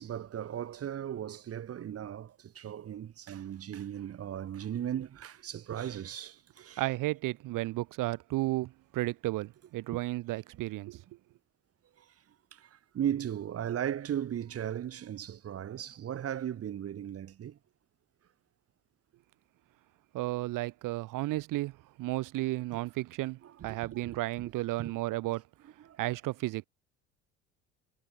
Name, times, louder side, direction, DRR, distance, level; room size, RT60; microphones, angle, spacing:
voice 1, 0.0-6.8 9.9-10.0 12.0-17.6 22.7-22.8 23.4-24.5 24.8-24.9 25.6-26.0, right 10 dB, 40° right, 1.7 m, -37 dB
voice 2, 6.8-11.0 20.1-25.4 26.0-26.7, right 18 dB, 60° right, 2.7 m, -33 dB
hypercardioid pair, 60°, 36 cm